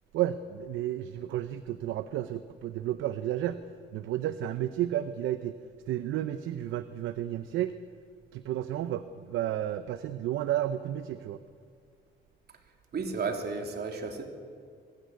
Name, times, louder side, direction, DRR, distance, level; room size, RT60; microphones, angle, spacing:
voice 1, 0.1-3.6 3.9-5.5 5.9-7.8 8.3-11.4, right 12 dB, 90° right, 12 dB, 0.8 m, -32 dB
voice 2, 12.9-14.2, right 4 dB, 55° right, 3 dB, 3.1 m, -33 dB
23.0 x 15.5 x 9.5 m, 2.1 s
cardioid pair, 90°, 20 cm